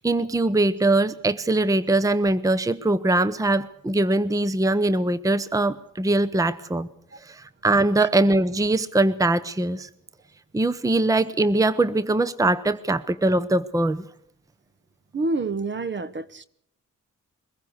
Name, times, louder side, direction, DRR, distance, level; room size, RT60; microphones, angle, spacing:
voice 1, 0.0-6.9 7.2-9.9 10.5-14.0, right 2 dB, 10° right, 0.8 m, -22 dB
voice 2, 15.1-16.5, right 3 dB, 35° right, 1.1 m, -28 dB
23.0 x 15.5 x 7.9 m
cardioid pair, 90°, 31 cm